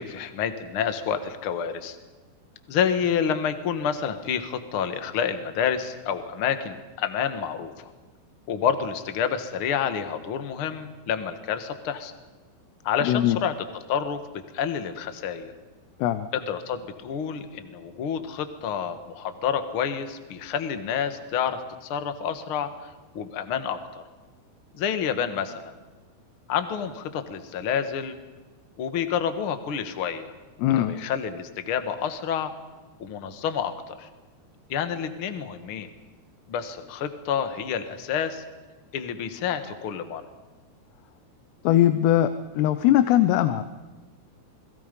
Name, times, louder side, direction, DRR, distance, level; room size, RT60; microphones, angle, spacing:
voice 1, 0.0-2.0 2.7-7.9 8.5-12.1 12.8-14.2 14.5-15.5 16.3-24.0 24.7-25.7 26.5-28.1 28.8-30.3 30.8-32.5 33.0-34.1 34.7-35.9 36.5-38.4 38.9-40.2, left 8 dB, 55° left, 9 dB, 1.5 m, -29 dB
voice 2, 13.0-13.4 16.0-16.3 30.6-30.9 41.6-43.6, left 12 dB, 90° left, 11 dB, 3.0 m, -20 dB
29.5 x 21.5 x 5.3 m, 1.3 s
omnidirectional pair, 4.7 m